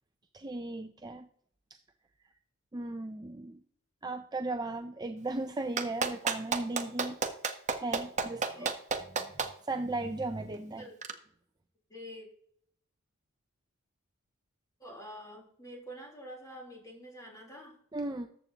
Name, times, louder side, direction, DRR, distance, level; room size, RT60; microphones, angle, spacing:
voice 1, 0.3-1.3 1.7-1.8 2.7-3.6 4.0-7.2 7.8-8.7 9.1-10.9 17.9-18.3, right 2 dB, 20° right, 6 dB, 0.5 m, -36 dB
Clapping, 5.8-9.5 11.0-11.1, right 5 dB, 35° right, 1.0 m, -30 dB
voice 2, 11.9-12.3 14.8-17.8, equal, 15° left, -2 dB, 3.7 m, -47 dB
14.0 x 8.1 x 2.9 m, 0.63 s
head